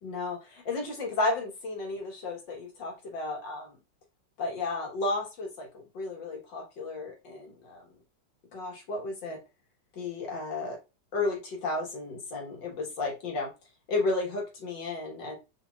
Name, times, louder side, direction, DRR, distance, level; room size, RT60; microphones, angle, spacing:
voice 1, 0.0-3.7 4.4-7.8 8.5-9.4 9.9-10.8 11.1-13.5 13.9-15.4, left 2 dB, 65° left, -1 dB, 2.0 m, -33 dB
4.4 x 4.1 x 2.3 m, 0.26 s
omnidirectional pair, 2.2 m